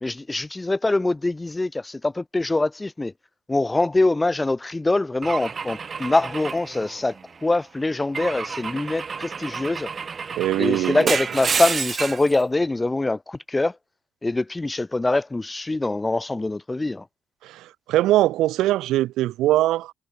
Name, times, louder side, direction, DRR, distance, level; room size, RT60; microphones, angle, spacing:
voice 1, 0.0-3.1 3.5-7.1 7.4-9.9 10.6-13.8 14.2-17.0, left 2 dB, 15° left, 0.3 m, -24 dB
Car / Engine / Glass, 5.2-7.4 8.1-12.3, right 5 dB, 40° right, 0.7 m, -30 dB
voice 2, 10.4-11.1 17.4-19.9, right 15 dB, 90° right, 0.3 m, -22 dB
cardioid pair, 90°, 0 cm